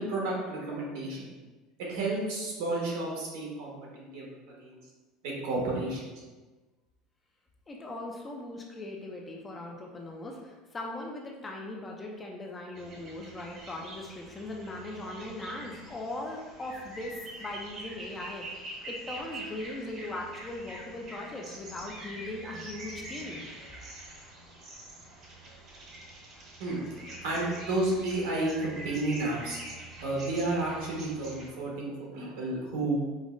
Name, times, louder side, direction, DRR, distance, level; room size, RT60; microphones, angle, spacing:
voice 1, 0.0-1.3 1.8-4.8 5.2-6.1 26.6-29.6 30.0-33.0, right 2 dB, 80° right, -3 dB, 1.1 m, -32 dB
voice 2, 7.7-18.6 18.9-23.5, left 2 dB, 15° left, 0 dB, 0.4 m, -39 dB
sound 1, 12.7-31.5, right 1 dB, 35° right, 0.7 m, -45 dB
5.0 x 2.0 x 2.4 m, 1.2 s
cardioid pair, 160°, 0 cm